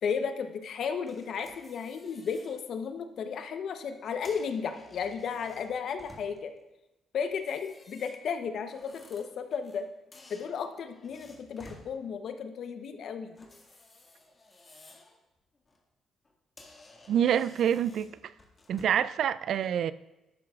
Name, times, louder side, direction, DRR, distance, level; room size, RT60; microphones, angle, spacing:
voice 1, 0.0-6.5 7.1-9.9 10.3-13.3, left 6 dB, 65° left, 8 dB, 0.8 m, -34 dB
sound 1, 1.1-2.6 3.0-3.3 4.0-6.6 7.3-9.8 10.1-11.9 13.3-15.2 15.5-15.8 16.2-16.3 16.6-19.1, left 2 dB, 30° left, 1.9 m, -55 dB
voice 2, 17.1-18.3 18.7-19.9, right 9 dB, 70° right, 16 dB, 0.3 m, -27 dB
13.0 x 10.5 x 2.4 m, 1.0 s
cardioid pair, 90°, 0 cm